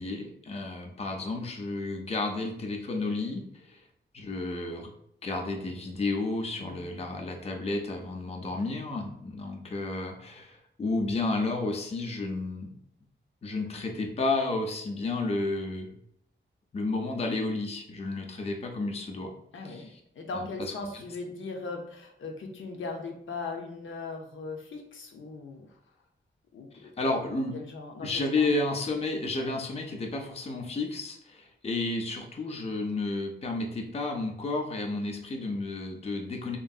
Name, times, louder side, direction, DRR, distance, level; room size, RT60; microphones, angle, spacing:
voice 1, 0.0-3.8 4.1-4.9 5.2-12.7 13.4-16.0 16.7-19.3 19.6-20.0 20.3-20.7 27.0-27.6 28.0-36.6, left 2 dB, 30° left, 2 dB, 0.4 m, -32 dB
voice 2, 6.6-6.9 19.5-19.9 20.1-25.7 26.5-27.2 27.5-28.5, left 3 dB, 80° left, 2 dB, 0.5 m, -39 dB
3.0 x 2.6 x 2.3 m, 0.73 s
wide cardioid pair, 120°, 20 cm